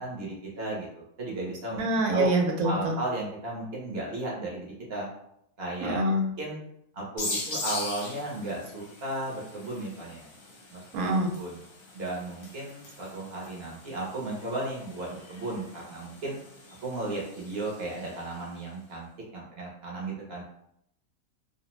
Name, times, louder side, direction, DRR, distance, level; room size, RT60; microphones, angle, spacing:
voice 1, 0.0-1.9 2.1-2.3 2.6-5.1 5.6-6.0 6.4-6.6 6.9-10.3 10.7-11.1 11.4-11.6 11.9-16.4 16.8-20.4, right 2 dB, 55° right, -4 dB, 0.8 m, -35 dB
voice 2, 1.8-2.9 5.8-6.2 10.9-11.3, right 1 dB, 80° right, 1 dB, 1.0 m, -25 dB
sound 1, 7.2-18.5, left 3 dB, 55° left, 0.6 m, -41 dB
2.5 x 2.0 x 3.0 m, 0.77 s
omnidirectional pair, 1.5 m